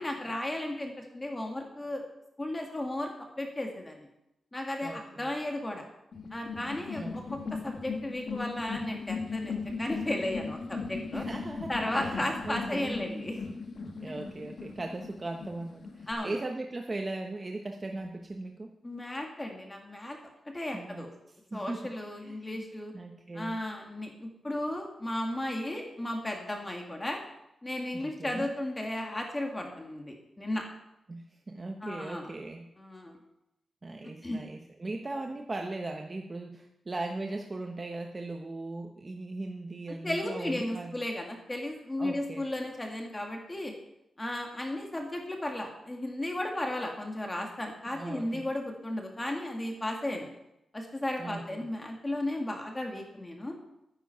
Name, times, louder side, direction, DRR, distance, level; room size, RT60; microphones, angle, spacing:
voice 1, 0.0-2.0 2.4-3.1 3.4-4.1 4.5-5.8 6.3-11.3 11.7-13.4 14.0-14.1 16.1-16.3 18.8-20.2 20.5-21.1 21.5-22.9 23.3-27.2 27.6-30.6 31.8-32.3 32.8-33.2 34.2-34.4 40.0-43.7 44.2-50.3 50.7-53.6, left 1 dB, 15° left, 2 dB, 1.9 m, -35 dB
voice 2, 4.8-5.3 6.9-7.3 11.1-13.4 13.8-18.7 20.7-21.1 21.5-21.8 22.2-22.7 22.9-23.6 27.9-28.5 31.1-32.7 33.8-41.0 42.0-42.5 47.9-48.4 51.2-51.7, right 2 dB, 30° right, 3 dB, 1.0 m, -39 dB
sound 1, 6.1-16.1, left 4 dB, 65° left, 1.7 m, -38 dB
12.0 x 9.9 x 5.7 m, 0.86 s
wide cardioid pair, 120°, 0 cm